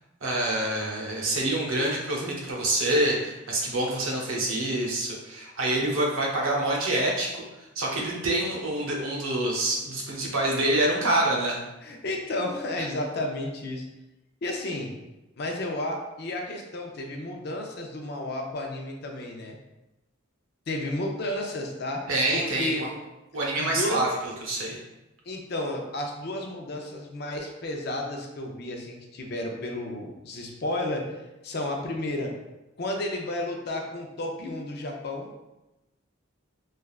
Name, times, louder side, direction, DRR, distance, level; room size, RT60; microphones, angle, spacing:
voice 1, 0.2-11.6 22.1-22.9 23.3-24.8, right 1 dB, 90° right, -2 dB, 0.7 m, -26 dB
voice 2, 11.8-13.8 14.4-14.9 15.4-19.6 20.7-22.0 22.3-22.8 23.6-24.1 25.3-31.1 31.4-32.3 32.8-35.3, left 1 dB, 50° left, 2 dB, 0.5 m, -32 dB
3.3 x 2.3 x 2.3 m, 0.99 s
head